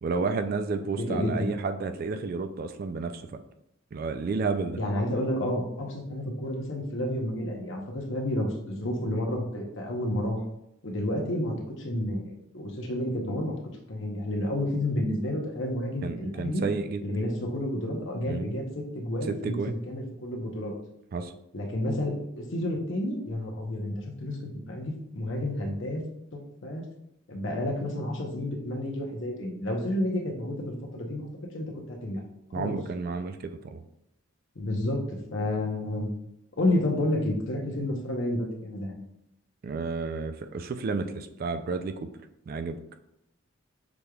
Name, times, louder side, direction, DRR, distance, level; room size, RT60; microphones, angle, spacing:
voice 1, 0.0-3.2 3.9-4.8 16.0-17.0 18.3-18.5 19.3-19.8 21.1-21.3 32.5-33.8 39.6-42.1 42.5-42.8, right 4 dB, 45° right, 8 dB, 0.3 m, -31 dB
voice 2, 1.0-1.5 4.8-10.4 10.8-13.5 13.9-16.6 17.0-20.7 21.5-26.0 26.3-26.9 27.3-31.3 31.5-32.2 32.5-32.7 34.6-35.0 35.3-36.1 36.6-39.0, left 1 dB, 60° left, 1 dB, 0.8 m, -30 dB
6.0 x 3.3 x 2.3 m, 0.80 s
head